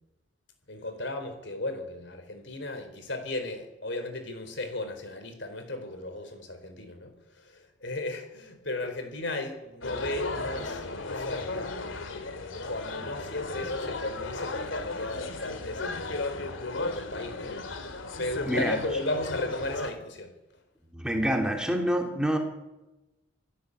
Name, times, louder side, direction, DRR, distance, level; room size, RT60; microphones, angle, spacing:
voice 1, 0.7-11.8 12.6-17.6 18.2-20.3, left 2 dB, 65° left, 4.3 m, -35 dB
sound 1, 9.8-19.9, left 3 dB, 80° left, 2.5 m, -35 dB
voice 2, 18.5-18.8 20.9-22.4, equal, 5° right, 3.1 m, -27 dB
27.5 x 16.0 x 8.2 m
head